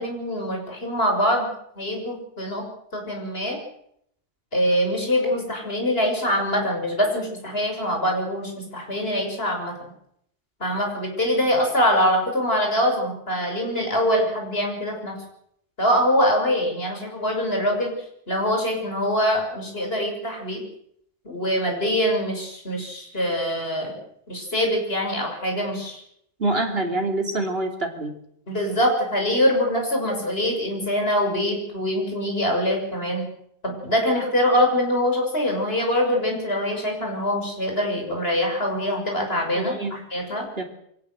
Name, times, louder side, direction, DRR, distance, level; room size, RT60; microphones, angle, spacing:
voice 1, 0.0-1.5 1.8-2.6 2.9-3.6 4.5-9.7 10.6-15.2 15.8-17.9 18.3-20.6 21.2-23.9 24.3-26.0 28.5-33.3 33.6-40.4, equal, 60° left, 1 dB, 6.6 m, -24 dB
voice 2, 26.4-28.1 39.6-40.0 40.6-40.7, right 2 dB, 55° right, 4 dB, 3.5 m, -25 dB
24.0 x 17.0 x 7.9 m, 0.72 s
omnidirectional pair, 1.2 m